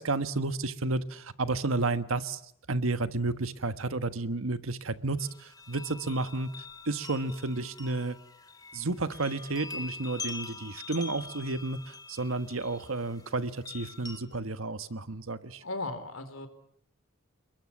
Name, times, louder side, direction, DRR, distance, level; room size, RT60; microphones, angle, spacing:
voice 1, 0.0-2.4 2.7-6.5 6.8-8.2 8.7-15.6, right 3 dB, 85° right, 11 dB, 1.4 m, -31 dB
sound 1, 5.2-14.2, left 4 dB, 20° left, 2.9 m, -44 dB
voice 2, 15.6-16.5, left 2 dB, 85° left, 9 dB, 4.0 m, -36 dB
29.5 x 21.5 x 7.3 m, 0.70 s
head